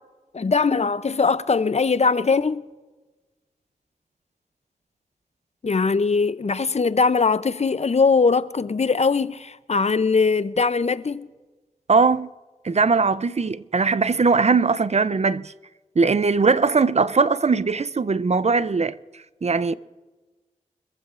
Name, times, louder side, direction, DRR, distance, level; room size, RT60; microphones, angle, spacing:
voice 1, 0.3-2.6 5.6-11.3, left 4 dB, 50° left, 0.5 m, -21 dB
voice 2, 11.9-12.3 12.6-15.5 16.0-19.0 19.4-19.7, right 4 dB, 50° right, 0.5 m, -20 dB
24.0 x 15.0 x 2.5 m
wide cardioid pair, 45°, 14 cm